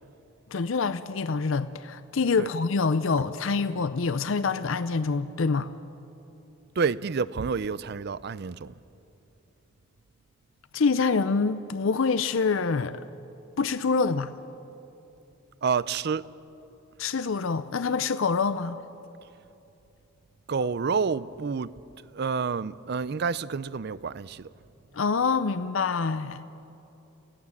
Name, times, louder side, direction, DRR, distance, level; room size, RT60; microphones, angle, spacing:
voice 1, 0.5-5.7 10.7-13.0 13.6-14.3 17.0-18.8 24.9-26.4, left 4 dB, 65° left, 0.6 m, -26 dB
voice 2, 6.8-8.7 15.6-16.3 20.5-21.7 22.1-24.5, right 5 dB, 50° right, 0.5 m, -28 dB
29.0 x 17.0 x 7.3 m
head